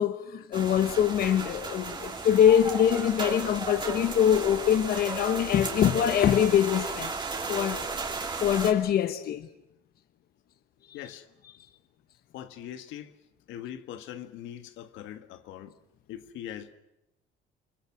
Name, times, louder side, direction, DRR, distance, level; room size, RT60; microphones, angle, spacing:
voice 1, 0.0-7.8 8.4-9.5, left 9 dB, 50° left, 1.0 m, -24 dB
sound 1, 0.5-8.7, right 4 dB, 25° right, 3.1 m, -35 dB
voice 2, 10.9-11.3 12.3-13.1 13.5-15.8 16.1-16.8, left 11 dB, 80° left, 1.6 m, -41 dB
29.5 x 21.5 x 6.2 m
cardioid pair, 140°, 20 cm